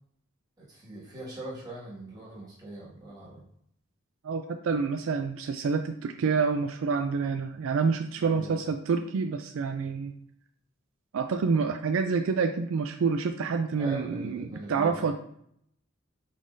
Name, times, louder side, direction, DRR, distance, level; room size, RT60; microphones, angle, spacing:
voice 1, 0.6-3.4 8.2-8.7 13.8-15.1, right 1 dB, 20° right, -8 dB, 1.8 m, -41 dB
voice 2, 4.2-10.1 11.1-15.1, right 5 dB, 70° right, 6 dB, 0.3 m, -28 dB
5.1 x 3.7 x 2.6 m, 0.69 s
head